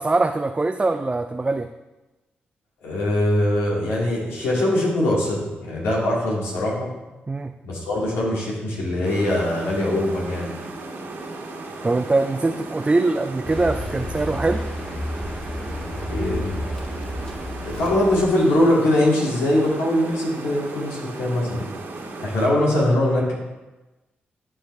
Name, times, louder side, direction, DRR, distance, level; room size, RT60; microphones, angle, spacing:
voice 1, 0.0-1.7 7.3-7.5 11.8-14.6, right 3 dB, 25° right, 6 dB, 0.4 m, -22 dB
voice 2, 2.8-6.9 7.6-10.5 15.9-16.6 17.7-21.7 22.2-23.3, left 1 dB, 85° left, -4 dB, 2.2 m, -22 dB
sound 1, 9.0-22.5, right 3 dB, 75° right, 1.8 m, -36 dB
Car, 13.4-18.6, left 1 dB, 20° left, 1.7 m, -31 dB
11.0 x 4.9 x 3.3 m, 1.1 s
supercardioid pair, 50°, 4 cm